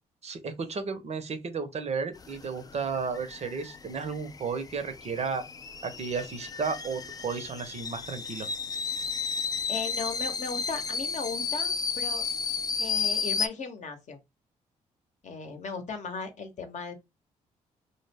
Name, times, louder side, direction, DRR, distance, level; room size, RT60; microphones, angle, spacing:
voice 1, 0.2-5.4 5.8-8.5, right 5 dB, 45° right, 0.6 m, -33 dB
sound 1, 2.1-13.5, left 5 dB, 25° left, 0.3 m, -33 dB
voice 2, 9.7-12.3 12.8-14.2 15.2-16.9, left 4 dB, 55° left, 0.8 m, -37 dB
2.1 x 2.0 x 3.3 m
supercardioid pair, 50°, 15 cm